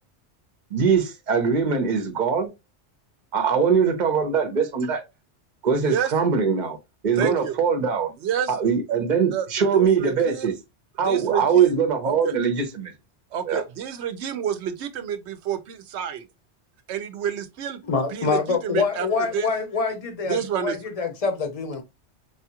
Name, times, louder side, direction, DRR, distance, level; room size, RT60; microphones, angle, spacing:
voice 1, 0.7-2.5 3.3-5.0 5.6-6.8 7.0-8.1 8.5-10.5 11.0-12.9 13.5-13.6, right 6 dB, 45° right, 0.9 m, -22 dB
voice 2, 5.8-6.1 7.2-7.6 8.2-8.6 9.3-10.5 11.0-11.7 12.0-12.4 13.3-16.2 16.9-17.8 18.1-19.1 19.3-19.5 20.3-20.8, right 9 dB, 75° right, 0.9 m, -29 dB
voice 3, 17.9-21.8, left 4 dB, 35° left, 0.8 m, -25 dB
4.7 x 2.3 x 2.8 m
omnidirectional pair, 1.2 m